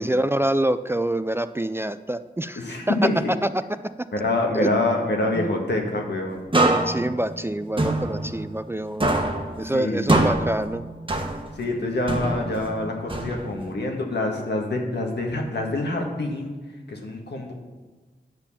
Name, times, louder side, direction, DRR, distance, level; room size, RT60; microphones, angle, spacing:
voice 1, 0.0-2.6 2.9-3.0 4.5-4.7 5.4-5.5 6.5-9.1 9.6-10.8, right 1 dB, 15° right, 12 dB, 0.3 m, -26 dB
voice 2, 2.6-3.2 4.1-6.5 9.6-10.3 11.5-16.6 16.9-17.5, left 2 dB, 80° left, 1 dB, 1.6 m, -26 dB
sound 1, 6.5-8.7 9.0-11.7 12.1-13.7, right 2 dB, 30° right, 1.2 m, -25 dB
9.6 x 4.6 x 7.2 m, 1.3 s
wide cardioid pair, 55°, 17 cm